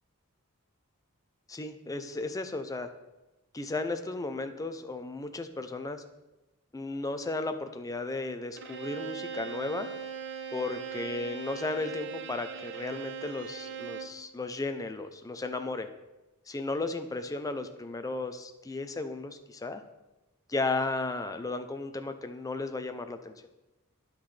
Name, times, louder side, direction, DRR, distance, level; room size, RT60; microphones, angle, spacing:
voice 1, 1.5-2.9 3.5-6.0 6.7-9.9 10.5-15.9 16.5-19.8 20.5-23.3, left 3 dB, 15° left, 8 dB, 0.4 m, -34 dB
Bowed string instrument, 8.6-14.2, right 7 dB, 55° right, 0.6 m, -40 dB
10.5 x 5.9 x 3.3 m, 1.0 s
head